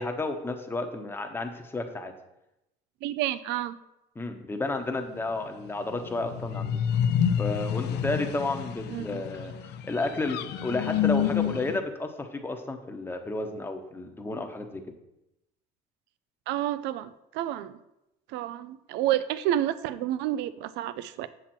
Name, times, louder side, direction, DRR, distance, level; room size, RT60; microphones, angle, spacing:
voice 1, 0.0-2.1 4.1-6.8 7.4-9.5 9.8-14.8, left 2 dB, 10° left, 4 dB, 0.9 m, -32 dB
voice 2, 3.0-3.8 8.9-9.2 16.5-17.8 18.3-21.3, right 12 dB, 70° right, 14 dB, 0.5 m, -30 dB
sound 1, 5.9-11.8, left 8 dB, 70° left, 0.6 m, -28 dB
7.7 x 7.4 x 4.4 m, 0.89 s
cardioid pair, 140°, 18 cm